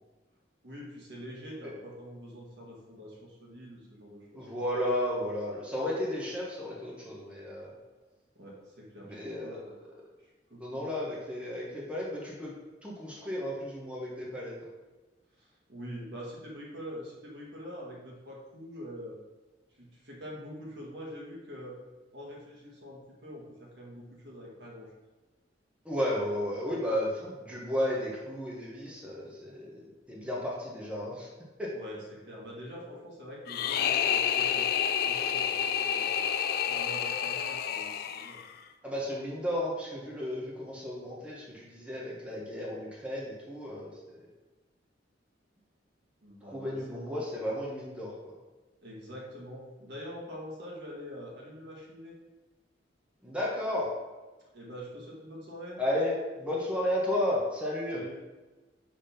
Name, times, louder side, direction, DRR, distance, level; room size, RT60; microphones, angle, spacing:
voice 1, 0.6-4.4 8.3-9.7 10.2-10.8 15.4-19.2 19.8-21.8 22.1-24.9 31.7-34.7 35.0-36.2 36.6-38.4 46.2-46.8 48.8-52.1 54.5-55.8 57.9-58.2, equal, 65° right, -4 dB, 1.6 m, -45 dB
voice 2, 4.3-7.7 9.0-9.6 10.6-12.5 12.8-14.5 25.8-31.3 31.6-31.7 38.8-44.2 46.4-48.3 53.2-53.9 55.8-58.0, left 1 dB, 5° right, -5 dB, 1.0 m, -33 dB
sound 1, 33.5-38.6, left 8 dB, 55° left, 0.3 m, -29 dB
5.2 x 3.6 x 5.7 m, 1.2 s
head